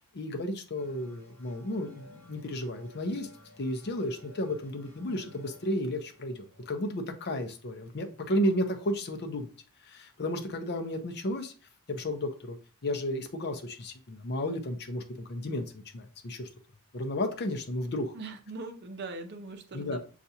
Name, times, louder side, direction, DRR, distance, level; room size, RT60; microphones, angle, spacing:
voice 1, 0.1-3.3 3.6-9.5 9.8-11.5 11.9-12.6 12.8-16.5 16.9-18.2 19.7-20.0, left 1 dB, 50° left, 0.6 m, -33 dB
sound 1, 0.8-8.0, left 1 dB, 10° left, 2.0 m, -56 dB
voice 2, 18.1-20.0, right 3 dB, 50° right, 0.6 m, -41 dB
6.7 x 2.4 x 2.8 m
head